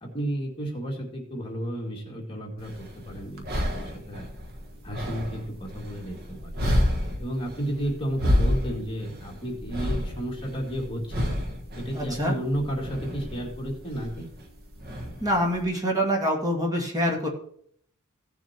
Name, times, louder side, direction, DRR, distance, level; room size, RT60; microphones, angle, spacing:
voice 1, 0.0-4.3 4.8-6.7 7.2-11.3 11.8-14.3, right 1 dB, 25° left, -1 dB, 2.2 m, -32 dB
sound 1, 2.6-15.6, left 1 dB, 45° right, 1.4 m, -30 dB
voice 2, 11.9-12.3 15.2-17.3, equal, 15° right, -1 dB, 2.0 m, -25 dB
16.0 x 7.1 x 2.9 m, 0.64 s
head